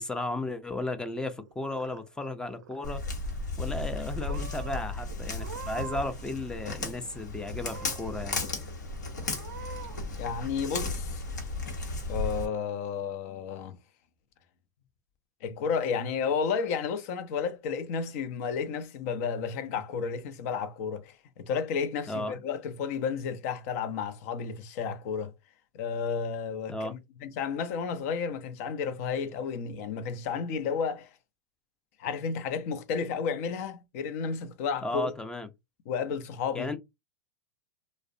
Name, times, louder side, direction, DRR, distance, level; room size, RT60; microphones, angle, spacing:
voice 1, 0.0-3.0 3.6-8.4 22.1-22.4 26.7-26.9 34.8-35.5 36.5-36.8, left 2 dB, 10° left, 0.4 m, -34 dB
Purr / Meow, 1.4-2.3 2.6-3.1 3.8-3.9 4.2-4.8 5.3-6.2 6.5-7.2 7.6-8.2 8.7-8.8 9.2-10.0, right 8 dB, 85° right, 0.4 m, -44 dB
Walk footsteps, 2.8-12.4, left 3 dB, 85° left, 0.9 m, -35 dB
voice 2, 10.2-11.2 12.1-13.7 15.4-25.3 25.7-31.1 32.0-35.1 35.9-36.7, left 6 dB, 55° left, 0.5 m, -32 dB
2.4 x 2.0 x 2.5 m
hypercardioid pair, 105°, 9 cm